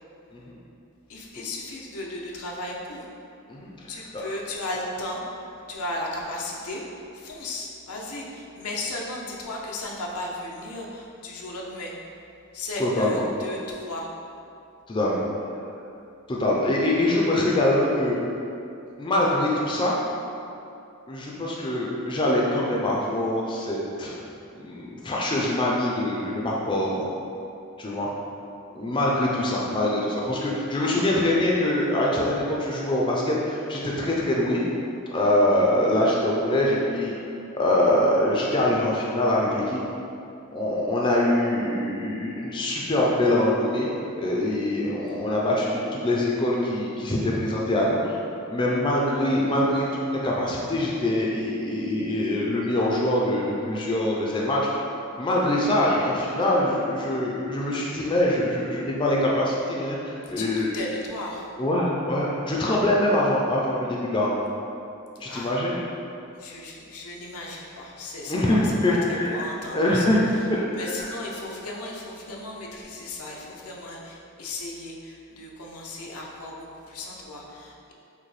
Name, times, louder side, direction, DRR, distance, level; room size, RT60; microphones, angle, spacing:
voice 1, 1.1-3.1 3.9-5.2 5.7-6.8 7.1-11.9 12.5-14.1 60.2-61.5 65.3-65.6 66.3-70.4 70.7-77.9, left 2 dB, 90° left, -2 dB, 0.7 m, -35 dB
voice 2, 12.8-13.2 14.9-15.2 16.3-18.2 19.0-19.9 21.1-24.1 24.6-27.1 27.8-28.1 28.7-34.6 35.1-37.1 37.5-39.8 40.5-43.9 44.2-48.2 48.5-54.6 55.2-60.7 61.6-64.5 65.2-65.8 68.3-69.4 69.7-70.2 70.5-70.7 71.0-71.1, left 1 dB, 20° left, -3 dB, 0.4 m, -24 dB
6.4 x 2.1 x 3.2 m, 2.6 s
head